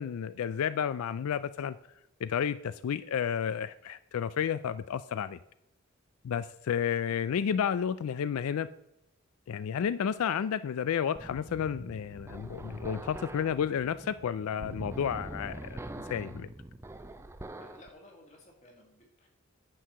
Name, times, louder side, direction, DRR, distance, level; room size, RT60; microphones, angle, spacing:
voice 1, 0.0-1.8 2.2-5.4 6.2-8.7 9.5-15.8 16.1-16.5, left 8 dB, 90° left, 15 dB, 0.3 m, -31 dB
sound 1, 11.2-17.9, right 1 dB, 10° right, 0.3 m, -44 dB
voice 2, 17.6-19.3, left 1 dB, 35° left, 0 dB, 2.2 m, -55 dB
10.0 x 4.6 x 6.2 m, 0.85 s
head